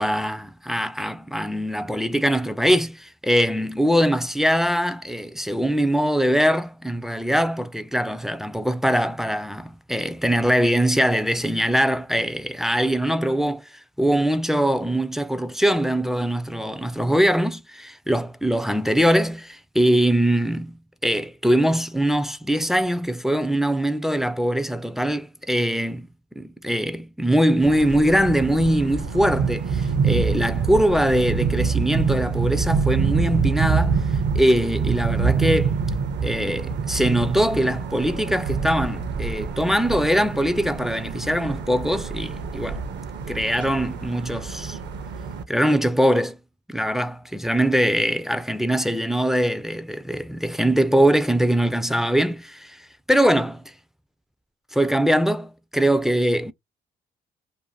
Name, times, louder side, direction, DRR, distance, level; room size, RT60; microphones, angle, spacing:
voice 1, 0.0-13.7 14.0-20.8 21.0-26.1 26.4-34.0 34.4-35.7 36.2-42.8 43.3-44.8 45.5-46.4 46.7-52.8 53.1-53.6 54.7-56.5, equal, ahead, 0.3 m, -22 dB
sound 1, 27.6-45.4, right 5 dB, 60° right, 0.6 m, -26 dB
2.6 x 2.1 x 3.1 m
cardioid pair, 90°, 20 cm